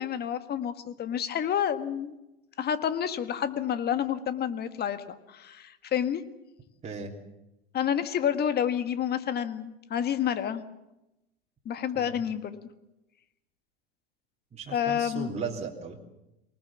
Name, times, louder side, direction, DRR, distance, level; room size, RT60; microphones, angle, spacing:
voice 1, 0.0-2.1 2.6-6.2 7.7-10.6 11.6-12.6 14.7-15.3, left 9 dB, 30° left, 11 dB, 1.7 m, -29 dB
voice 2, 6.8-7.1 11.9-12.2 14.5-16.0, right 5 dB, 20° right, -1 dB, 3.2 m, -36 dB
24.0 x 19.5 x 7.3 m, 0.92 s
hypercardioid pair, 95°, 31 cm